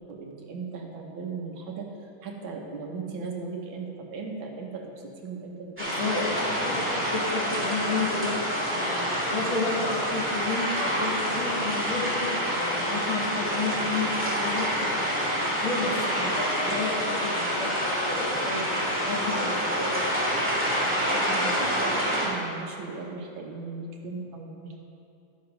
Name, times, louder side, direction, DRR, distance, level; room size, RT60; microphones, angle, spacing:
voice 1, 0.1-1.9 2.2-5.8 6.2-6.7 15.9-16.4 16.7-16.8 21.1-24.8, right 4 dB, 75° right, 1 dB, 1.9 m, -37 dB
voice 2, 5.8-6.3 6.6-8.4 8.7-14.7 15.2-20.0, left 3 dB, 75° left, -4 dB, 2.8 m, -32 dB
sound 1, 5.8-22.3, equal, 5° right, 2.3 m, -27 dB
12.5 x 7.6 x 5.2 m, 2.6 s
omnidirectional pair, 2.3 m